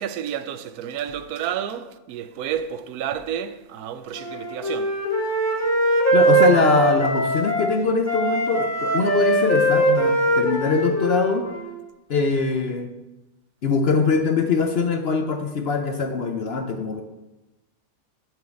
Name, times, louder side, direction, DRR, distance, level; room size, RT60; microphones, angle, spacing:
voice 1, 0.0-5.0, right 9 dB, 80° right, 1.1 m, -30 dB
Wind instrument woodwind instrument, 4.1-7.7 8.0-11.8, right 1 dB, 10° left, 0.9 m, -21 dB
voice 2, 6.1-11.5 12.1-12.9 13.6-17.0, left 4 dB, 55° left, 0.7 m, -22 dB
7.8 x 4.8 x 6.9 m
omnidirectional pair, 1.6 m